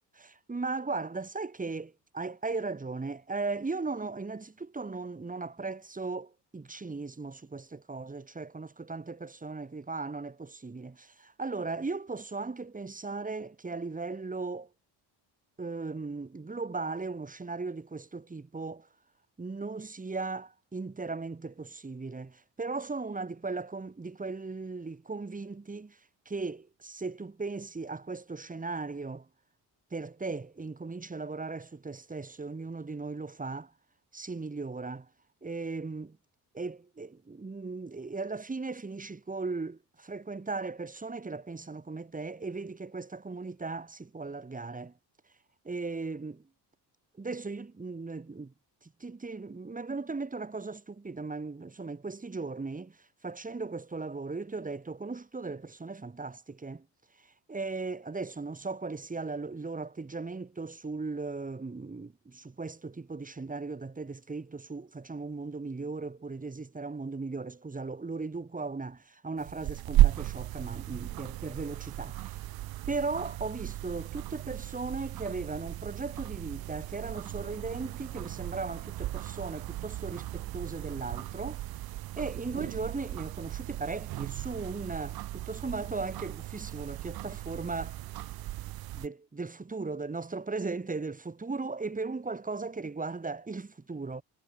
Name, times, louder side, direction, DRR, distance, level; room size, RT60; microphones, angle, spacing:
voice 1, 0.1-14.7 15.6-18.9 19.4-26.0 26.3-29.3 29.9-33.7 34.1-35.1 35.4-36.2 36.5-44.9 45.6-46.4 47.2-48.5 48.8-53.0 53.2-56.9 57.2-72.4 72.9-81.6 82.2-88.0 88.9-94.2, right 3 dB, 20° right, 2.5 m, -37 dB
sound 1, 69.4-89.1, right 15 dB, 55° right, 0.6 m, -34 dB
cardioid pair, 100°, 43 cm